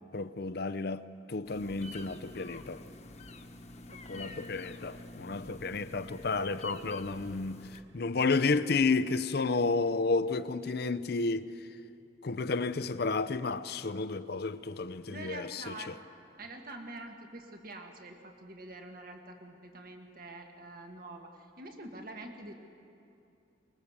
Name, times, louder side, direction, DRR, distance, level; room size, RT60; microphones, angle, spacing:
voice 1, 0.1-1.0 1.3-2.8 4.1-7.6 7.9-11.5 12.2-15.9, left 3 dB, 55° left, 0.6 m, -31 dB
sound 1, 1.4-7.8, left 2 dB, 35° left, 1.2 m, -48 dB
voice 2, 3.9-4.5 15.1-16.0 16.4-22.5, right 2 dB, 50° right, 1.8 m, -46 dB
24.0 x 21.0 x 7.3 m
head